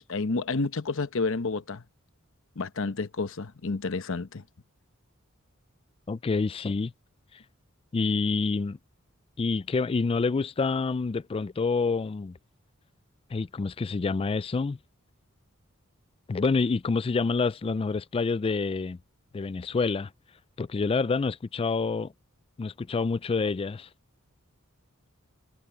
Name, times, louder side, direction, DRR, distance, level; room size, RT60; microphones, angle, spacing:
voice 1, 0.0-1.8 2.6-4.4, left 3 dB, 65° left, 0.9 m, -30 dB
voice 2, 6.1-6.9 7.9-8.8 9.4-12.4 13.3-14.8 16.3-19.0 19.3-20.1 20.6-22.1 22.6-23.9, left 4 dB, 25° left, 0.3 m, -27 dB
head